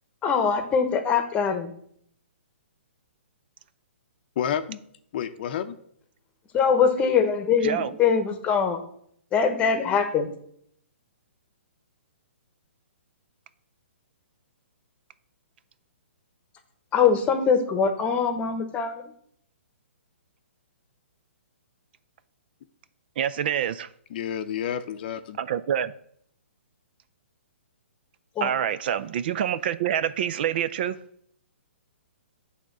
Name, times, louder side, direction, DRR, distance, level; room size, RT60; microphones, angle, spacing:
voice 1, 0.2-1.7 6.5-8.8 9.3-10.3 16.9-19.1 28.4-28.5, left 6 dB, 15° left, 1.0 m, -23 dB
voice 2, 4.4-4.8 5.1-5.8 24.1-25.4, left 9 dB, 45° left, 0.6 m, -30 dB
voice 3, 23.2-23.9 25.4-25.9 28.4-31.0, right 9 dB, 50° right, 0.4 m, -26 dB
9.1 x 3.6 x 6.0 m
hypercardioid pair, 145°, 7 cm